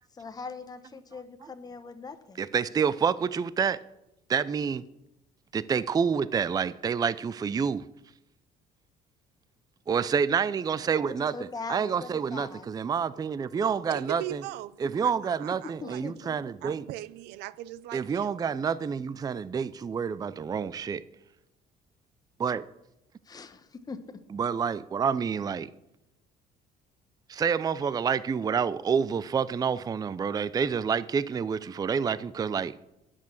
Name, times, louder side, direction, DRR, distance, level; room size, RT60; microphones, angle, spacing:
voice 1, 0.1-2.4 11.1-12.7 15.8-16.5 23.2-24.2, left 4 dB, 20° left, 0.9 m, -41 dB
voice 2, 2.4-3.8 4.3-4.8 5.5-7.8 9.9-11.4 11.7-14.4 14.8-16.8 17.9-21.0 22.4-22.6 24.3-25.7 27.3-32.7, right 6 dB, 20° right, 0.4 m, -28 dB
voice 3, 13.9-16.0 16.3-18.4, right 14 dB, 90° right, 0.5 m, -40 dB
10.5 x 6.2 x 8.6 m
cardioid pair, 110°, 17 cm